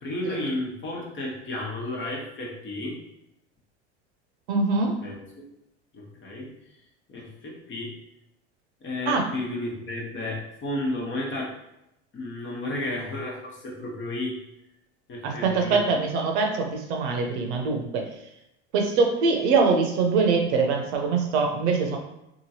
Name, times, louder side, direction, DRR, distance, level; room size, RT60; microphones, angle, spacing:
voice 1, 0.0-3.0 5.0-5.4 5.9-6.5 7.1-7.9 8.8-11.5 12.1-14.4 15.1-15.8, left 1 dB, 35° left, -3 dB, 1.0 m, -32 dB
voice 2, 4.5-4.9 9.1-9.2 15.2-18.1 18.7-22.0, right 4 dB, 70° right, 2 dB, 0.7 m, -23 dB
2.9 x 2.5 x 2.8 m, 0.86 s
hypercardioid pair, 90°, 35 cm